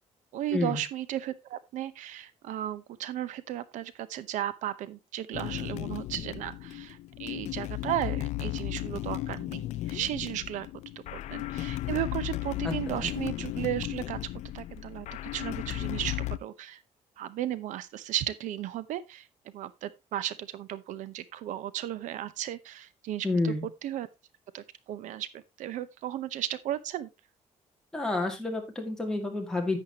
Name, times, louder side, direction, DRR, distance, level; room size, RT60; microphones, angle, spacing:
voice 1, 0.3-10.7 11.1-14.2 14.5-16.2 16.4-16.8 17.2-23.5 23.8-24.1 24.5-27.1, right 12 dB, 75° right, 0.7 m, -35 dB
sound 1, 5.3-16.4, left 15 dB, 65° left, 0.4 m, -35 dB
voice 2, 23.2-23.7 27.9-29.8, left 2 dB, 5° left, 2.2 m, -29 dB
10.5 x 8.5 x 2.9 m
cardioid pair, 175°, 13 cm